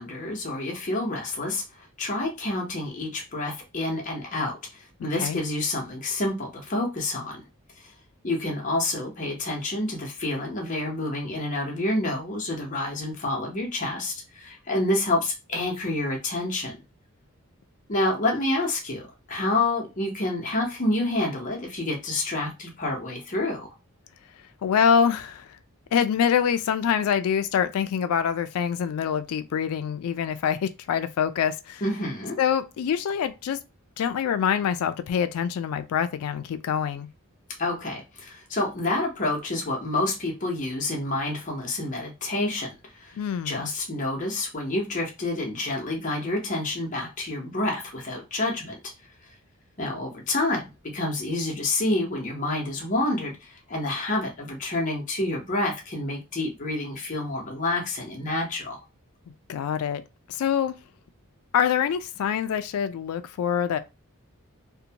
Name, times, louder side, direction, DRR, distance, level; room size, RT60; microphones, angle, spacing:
voice 1, 0.0-7.4 8.2-16.8 17.9-23.7 31.8-32.4 37.6-43.2 43.4-48.8 49.8-58.8, left 2 dB, 35° left, 0.8 m, -28 dB
voice 2, 5.0-5.4 24.6-25.5 25.9-31.8 32.4-33.6 34.0-37.1 43.2-43.6 59.5-60.0 60.3-60.8 61.5-63.8, left 8 dB, 80° left, 0.3 m, -25 dB
2.7 x 2.1 x 2.7 m
head